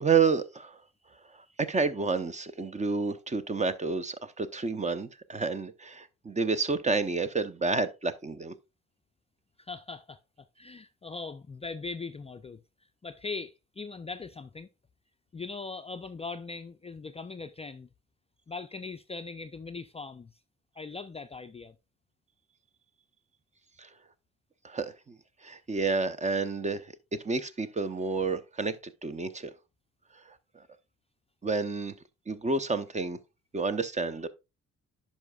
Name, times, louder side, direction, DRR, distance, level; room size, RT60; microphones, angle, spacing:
voice 1, 0.0-0.8 1.6-8.5 23.8-23.9 24.6-25.1 25.4-26.9 27.2-29.5 31.4-31.9 32.3-33.2 33.5-34.3, right 4 dB, 25° right, 0.7 m, -29 dB
voice 2, 9.6-12.6 13.0-14.7 15.3-17.9 18.5-20.4 20.8-21.8, left 4 dB, 20° left, 0.4 m, -40 dB
10.5 x 5.5 x 2.3 m
cardioid pair, 90°, 30 cm